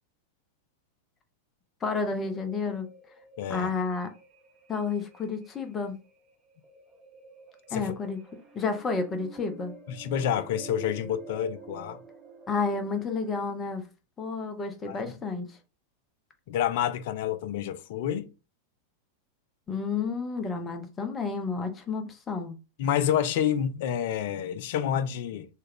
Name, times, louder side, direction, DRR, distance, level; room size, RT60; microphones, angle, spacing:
voice 1, 1.8-2.9 3.5-4.1 4.7-6.0 7.7-8.2 8.5-9.7 12.5-13.9 14.2-15.5 19.7-22.6, left 4 dB, 20° left, 0.7 m, -31 dB
sound 1, 2.1-13.5, right 4 dB, 15° right, 0.9 m, -49 dB
voice 2, 3.4-3.7 7.7-7.8 9.9-12.0 14.9-15.2 16.5-18.3 22.8-25.5, left 9 dB, 50° left, 0.4 m, -28 dB
3.1 x 2.3 x 3.5 m
figure-of-eight pair, 90°, 0 cm